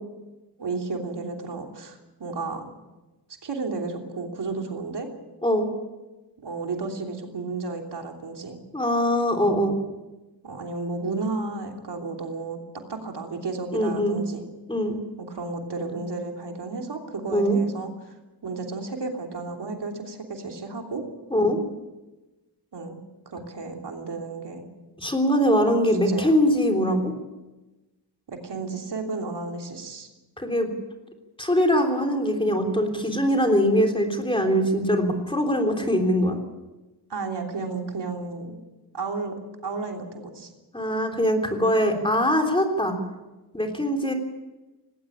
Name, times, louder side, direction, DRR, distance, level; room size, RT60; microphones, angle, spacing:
voice 1, 0.6-2.7 3.4-5.1 6.4-8.6 10.4-12.6 12.9-14.4 15.2-18.1 18.4-21.0 22.7-23.0 23.2-24.7 26.1-26.3 28.3-30.1 37.1-38.6 38.9-39.3 39.6-40.5, right 3 dB, 85° right, 2 dB, 3.2 m, -33 dB
voice 2, 8.7-9.8 13.7-14.2 14.7-15.0 17.3-17.6 21.3-21.6 25.0-27.1 30.4-30.8 31.4-36.4 40.7-43.0 43.5-44.1, equal, 15° left, 3 dB, 3.4 m, -22 dB
19.0 x 17.5 x 8.7 m, 1.1 s
wide cardioid pair, 165°, 40 cm